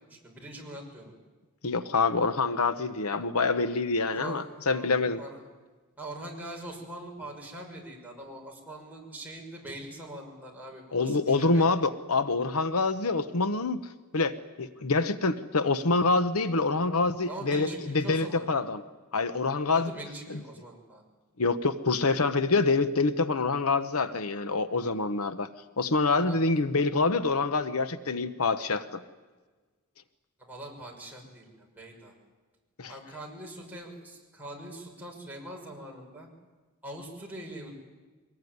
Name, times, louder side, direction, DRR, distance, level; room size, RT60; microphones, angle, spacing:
voice 1, 0.1-1.1 4.1-5.4 6.0-11.7 17.2-18.5 19.7-21.0 26.2-26.5 30.5-32.1 32.9-36.3 36.8-37.7, right 1 dB, 10° right, -2 dB, 6.2 m, -43 dB
voice 2, 1.6-5.2 10.9-18.8 19.1-19.9 20.3-20.4 21.4-25.5 25.8-29.0 32.8-32.9, left 3 dB, 80° left, 11 dB, 1.1 m, -26 dB
24.0 x 20.0 x 9.5 m, 1.3 s
head